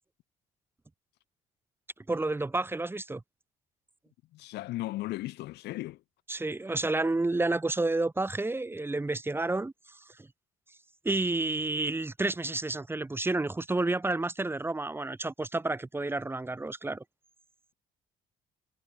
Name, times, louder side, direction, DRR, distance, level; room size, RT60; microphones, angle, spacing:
voice 1, 2.1-3.2 6.3-10.0 11.0-17.0, right 2 dB, 15° right, 2.3 m, -30 dB
voice 2, 4.3-6.0, left 17 dB, 80° left, 4.8 m, -36 dB
cardioid pair, 110°, 17 cm